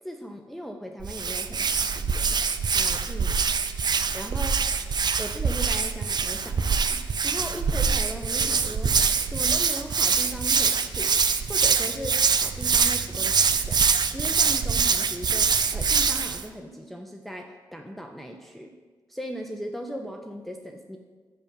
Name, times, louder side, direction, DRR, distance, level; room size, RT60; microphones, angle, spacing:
voice 1, 0.0-2.4 2.7-3.4 4.1-4.6 5.2-8.9 9.3-11.1 11.5-18.7 19.1-21.0, equal, ahead, 3 dB, 0.7 m, -38 dB
Hands, 1.0-16.4, right 5 dB, 50° right, 0.4 m, -24 dB
5.3 x 4.9 x 5.2 m, 1.4 s
supercardioid pair, 40°, 9 cm